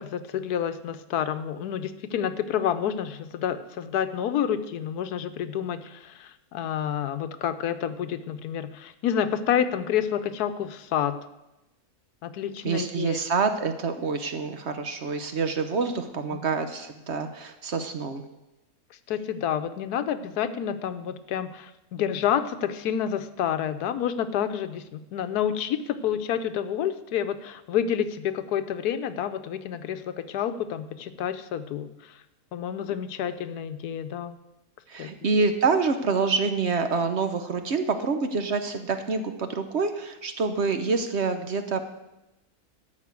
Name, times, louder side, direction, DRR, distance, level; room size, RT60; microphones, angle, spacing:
voice 1, 0.0-11.1 12.2-13.2 19.1-32.2 32.5-34.4 35.0-35.1, left 9 dB, 85° left, 12 dB, 1.2 m, -29 dB
voice 2, 12.6-18.2 34.9-41.8, right 4 dB, 50° right, 8 dB, 1.0 m, -27 dB
12.5 x 5.3 x 8.3 m, 0.94 s
omnidirectional pair, 1.6 m